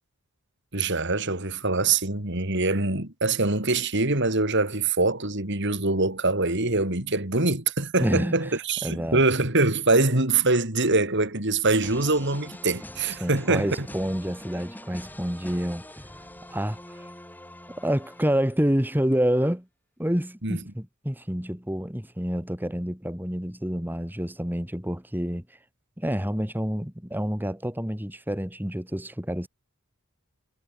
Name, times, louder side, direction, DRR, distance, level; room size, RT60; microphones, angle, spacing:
voice 1, 0.7-13.9 20.4-20.6, right 3 dB, 55° right, 3.9 m, -24 dB
voice 2, 8.0-8.5 8.8-9.2 13.2-15.8 16.5-17.1 17.8-19.7 20.0-25.4 26.0-29.5, equal, 10° right, 1.9 m, -28 dB
sound 1, 11.8-18.8, left 1 dB, 10° left, 4.7 m, -44 dB
head